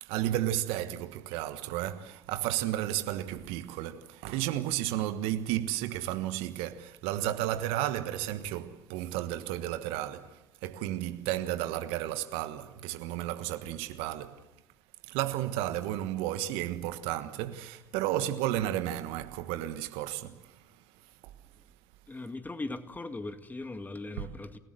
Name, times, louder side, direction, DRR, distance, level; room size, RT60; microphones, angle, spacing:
voice 1, 0.0-14.5 15.0-20.7 21.2-21.3 24.2-24.3, right 13 dB, 65° right, 1.3 m, -33 dB
voice 2, 22.1-24.6, left 2 dB, 15° left, 2.0 m, -39 dB
28.5 x 18.0 x 7.8 m
figure-of-eight pair, 55°, 10 cm